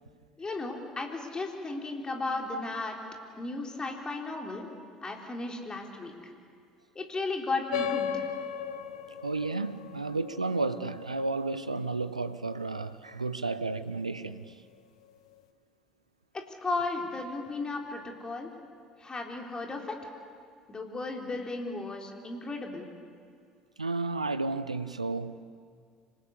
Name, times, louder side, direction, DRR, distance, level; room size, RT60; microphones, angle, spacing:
voice 1, 0.4-3.0 3.4-4.7 5.0-6.1 7.0-8.3 16.3-18.5 19.0-20.0 20.7-22.9, left 3 dB, 25° left, 3.8 m, -35 dB
sound 1, 7.7-12.7, left 8 dB, 70° left, 0.9 m, -36 dB
voice 2, 9.2-14.6 23.8-25.4, right 3 dB, 85° right, 0.6 m, -32 dB
26.0 x 19.5 x 8.4 m
figure-of-eight pair, 60°, 3 cm